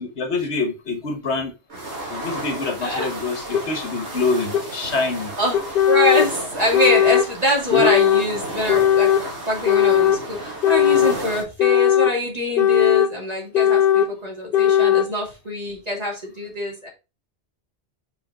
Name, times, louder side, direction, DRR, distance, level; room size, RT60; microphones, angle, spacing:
voice 1, 0.0-1.5 2.1-5.4 7.7-7.9 14.0-14.1, left 3 dB, 80° left, 1.5 m, -26 dB
sound 1, 1.7-11.4, right 1 dB, 85° right, 2.1 m, -33 dB
sound 2, 3.5-3.6 4.5-4.6 5.5-6.3 6.7-7.3 7.7-8.3 8.7-9.2 9.7-10.2 10.6-11.2 11.6-12.2 12.6-13.1 13.5-14.1 14.5-15.1, left 10 dB, 65° left, 0.8 m, -17 dB
voice 2, 5.4-9.1 9.5-16.9, left 1 dB, 35° right, 2.8 m, -24 dB
5.0 x 5.0 x 4.9 m
omnidirectional pair, 1.1 m